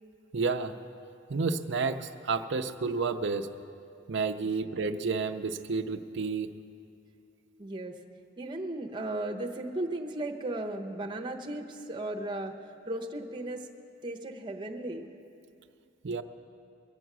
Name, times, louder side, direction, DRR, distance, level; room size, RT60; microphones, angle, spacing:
voice 1, 0.3-0.7 1.3-3.5 4.1-6.5 16.0-16.2, right 4 dB, 65° right, 6 dB, 0.6 m, -30 dB
voice 2, 7.6-7.9 8.4-12.5 12.9-13.6 14.0-15.1, right 1 dB, 25° right, 1 dB, 1.0 m, -35 dB
22.0 x 8.0 x 6.1 m, 2.5 s
head